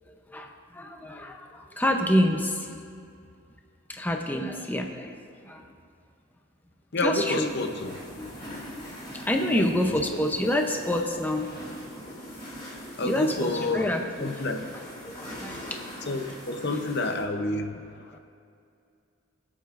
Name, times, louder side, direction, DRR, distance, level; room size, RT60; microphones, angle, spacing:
voice 1, 0.3-2.8 3.9-5.7 7.0-7.5 8.2-8.6 9.1-11.5 13.0-14.3 15.0-15.8 18.1-18.2, left 1 dB, 10° left, 3 dB, 0.7 m, -28 dB
voice 2, 6.9-7.9 9.5-9.7 13.0-13.9 14.2-14.7 16.1-18.2, left 2 dB, 55° left, 5 dB, 0.8 m, -29 dB
sound 1, 7.2-17.2, equal, 25° left, 2.7 m, -42 dB
24.0 x 8.5 x 2.5 m, 2.4 s
head